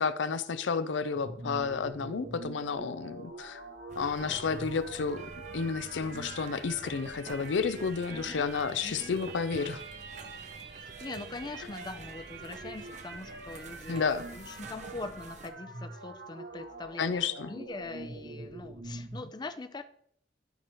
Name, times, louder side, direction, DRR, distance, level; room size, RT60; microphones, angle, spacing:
voice 1, 0.0-3.6 4.0-9.8 13.9-14.2 17.0-17.5, left 5 dB, 80° left, 12 dB, 0.5 m, -31 dB
sound 1, 1.1-19.3, right 2 dB, 60° right, 0.8 m, -45 dB
sound 2, 3.9-15.5, right 3 dB, 40° right, 0.6 m, -48 dB
voice 2, 8.1-8.5 8.8-9.2 10.8-19.8, left 3 dB, 25° left, 9 dB, 0.4 m, -42 dB
11.5 x 4.8 x 3.0 m, 0.63 s
head